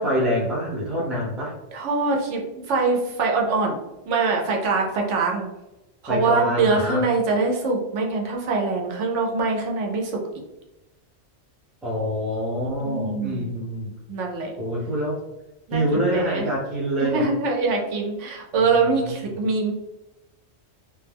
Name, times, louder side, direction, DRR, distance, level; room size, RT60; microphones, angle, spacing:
voice 1, 0.0-1.5 6.1-7.0 11.8-13.9 14.6-15.2 15.7-17.3 18.5-19.3, equal, ahead, -5 dB, 0.4 m, -26 dB
voice 2, 1.7-3.8 4.1-5.5 6.0-10.2 12.8-13.5 14.1-14.6 15.7-16.4 17.0-19.7, right 4 dB, 85° right, 0 dB, 1.0 m, -23 dB
2.2 x 2.2 x 3.4 m, 0.96 s
omnidirectional pair, 1.2 m